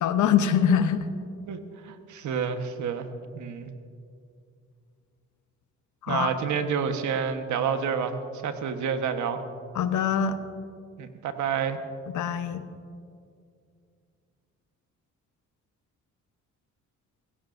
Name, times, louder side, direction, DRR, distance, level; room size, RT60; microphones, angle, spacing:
voice 1, 0.0-1.1 6.0-6.3 9.7-10.4 12.1-12.6, left 8 dB, 75° left, 9 dB, 1.0 m, -23 dB
voice 2, 1.8-3.1 3.3-3.7 6.1-8.2 8.4-9.4 11.0-11.8, right 7 dB, 75° right, 7 dB, 1.3 m, -28 dB
25.0 x 15.0 x 2.6 m, 2.4 s
cardioid pair, 90°, 30 cm